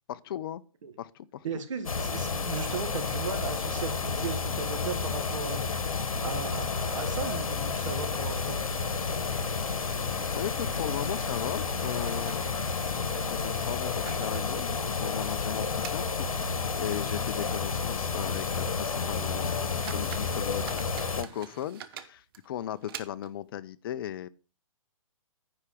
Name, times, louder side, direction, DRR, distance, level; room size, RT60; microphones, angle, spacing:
voice 1, 0.1-0.6 1.0-1.6 10.3-12.5 13.1-24.3, left 11 dB, 40° left, 0.6 m, -37 dB
voice 2, 1.4-8.6, right 6 dB, 65° right, 1.8 m, -37 dB
sound 1, 1.8-21.2, left 5 dB, 75° left, 1.3 m, -31 dB
sound 2, 4.3-21.6, right 2 dB, 10° right, 2.5 m, -52 dB
sound 3, 11.8-13.0 13.7-16.9 17.2-17.3 17.9-18.0 18.4-18.6 19.1-19.2 19.6-23.5, right 10 dB, 40° right, 0.9 m, -47 dB
9.9 x 4.8 x 5.7 m
hypercardioid pair, 140°, 18 cm